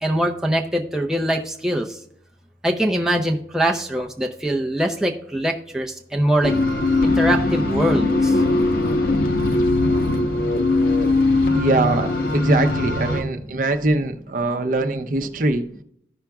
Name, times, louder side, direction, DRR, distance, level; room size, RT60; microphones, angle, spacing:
voice 1, 0.0-2.0 2.6-6.5 7.0-8.4, right 1 dB, 5° right, 0 dB, 0.5 m, -22 dB
sound 1, 6.4-13.2, left 2 dB, 50° left, 0.9 m, -20 dB
voice 2, 11.5-15.7, right 2 dB, 45° right, 6 dB, 0.6 m, -22 dB
14.0 x 5.7 x 2.3 m, 0.71 s
head